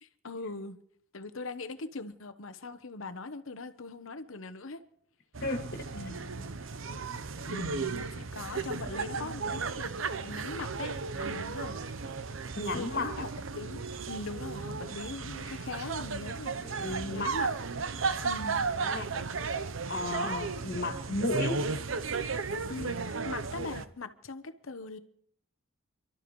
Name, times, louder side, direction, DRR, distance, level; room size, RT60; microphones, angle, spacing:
voice 1, 0.0-0.8 1.1-4.8 5.9-6.5 7.4-10.9 11.2-11.8 12.7-17.5 18.2-18.7 22.7-25.0, left 3 dB, 75° left, 1.0 m, -41 dB
zoo turtlesex, 5.3-23.8, right 4 dB, 70° right, 0.8 m, -35 dB
voice 2, 12.6-13.2 16.6-17.3 18.8-19.1 19.9-21.5, left 2 dB, 55° left, 2.3 m, -33 dB
28.0 x 12.5 x 3.2 m
head